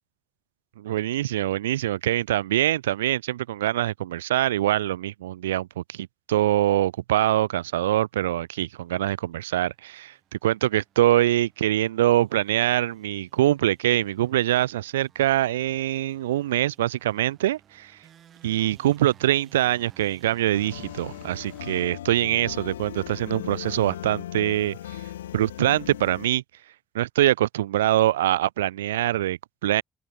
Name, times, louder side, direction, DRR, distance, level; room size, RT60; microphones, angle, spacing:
voice 1, 0.8-18.0 18.4-24.8 25.3-26.4 26.9-29.8, right 14 dB, 85° right, 0.4 m, -24 dB
sound 1, 9.5-21.9, right 9 dB, 60° right, 3.5 m, -56 dB
sound 2, 20.5-26.3, left 12 dB, 85° left, 0.4 m, -37 dB
open air
figure-of-eight pair, 40°, 0 cm